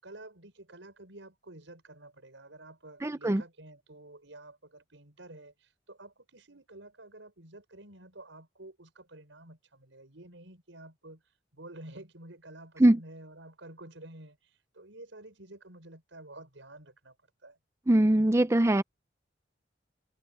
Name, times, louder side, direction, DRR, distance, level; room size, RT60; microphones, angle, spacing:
voice 1, 0.0-11.2 11.5-17.2 17.4-17.6, right 2 dB, 85° right, 5.4 m, -50 dB
voice 2, 3.0-3.4 12.8-13.0 17.9-18.8, right 1 dB, 15° right, 0.5 m, -22 dB
head